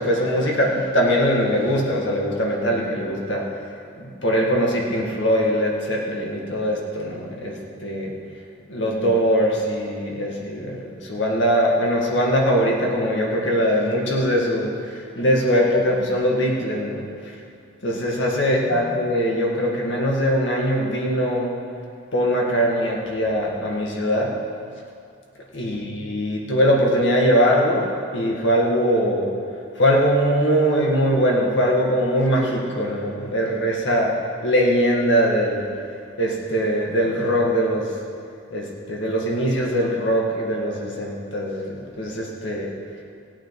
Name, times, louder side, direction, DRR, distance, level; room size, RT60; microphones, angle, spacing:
voice 1, 0.0-3.5 4.0-8.1 8.7-17.1 17.8-21.5 22.1-24.3 25.5-29.3 29.8-34.2 34.4-35.7 36.2-37.9 38.5-42.7, equal, 65° left, -2 dB, 2.0 m, -21 dB
17.0 x 8.7 x 4.9 m, 2.3 s
head